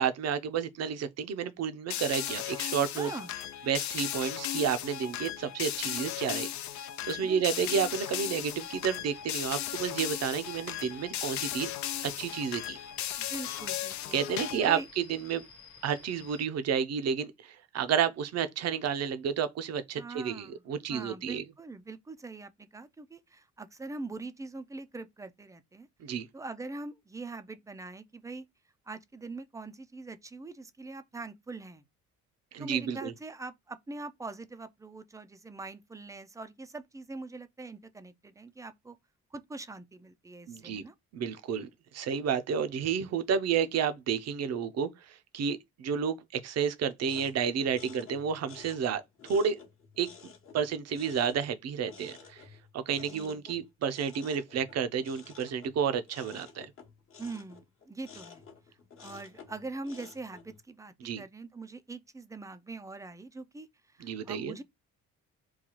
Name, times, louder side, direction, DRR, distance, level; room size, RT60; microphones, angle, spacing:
voice 1, 0.0-3.1 3.7-6.5 7.1-11.7 12.0-12.8 14.1-14.8 15.1-15.4 15.8-21.4 26.0-26.3 32.5-33.1 40.5-40.8 41.1-49.6 50.0-50.1 50.5-52.4 52.7-56.7 61.0-61.2 64.0-64.6, right 7 dB, 60° right, 0.6 m, -31 dB
sound 1, 1.9-14.8, left 12 dB, 70° left, 0.4 m, -36 dB
voice 2, 3.0-3.4 7.2-7.7 13.2-14.2 14.7-14.9 19.9-20.6 20.9-25.9 26.3-28.5 28.9-31.8 32.6-39.0 39.3-40.9 53.1-53.7 57.2-58.4 59.0-64.6, right 3 dB, 10° right, 0.3 m, -43 dB
sound 2, 7.8-16.5, left 5 dB, 85° left, 1.1 m, -53 dB
sound 3, 47.0-60.6, left 5 dB, 45° left, 0.9 m, -52 dB
3.8 x 2.3 x 2.9 m
cardioid pair, 90°, 30 cm